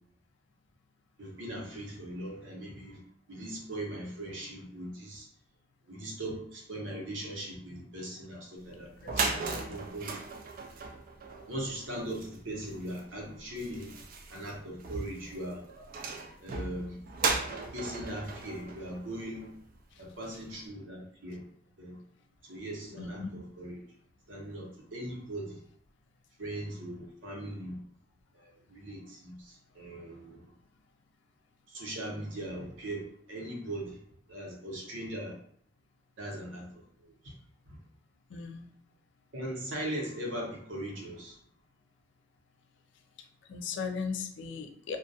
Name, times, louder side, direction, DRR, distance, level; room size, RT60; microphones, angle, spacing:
voice 1, 1.2-3.0 3.3-5.3 5.9-8.9 9.7-10.2 11.5-13.9 14.3-15.7 16.4-17.0 17.7-19.5 20.0-21.4 21.8-22.0 22.4-23.8 24.3-25.6 26.4-27.8 28.3-30.5 31.7-34.0 34.3-35.4 36.2-37.3 37.7-37.8 39.3-41.4, right 1 dB, 85° right, -1 dB, 0.8 m, -39 dB
sound 1, 8.7-8.8 9.0-19.8, right 4 dB, 50° right, 0.3 m, -37 dB
voice 2, 9.0-9.8 23.0-23.4 38.3-38.7 43.5-45.0, left 5 dB, 65° left, 6 dB, 0.4 m, -38 dB
2.2 x 2.2 x 2.6 m, 0.62 s
head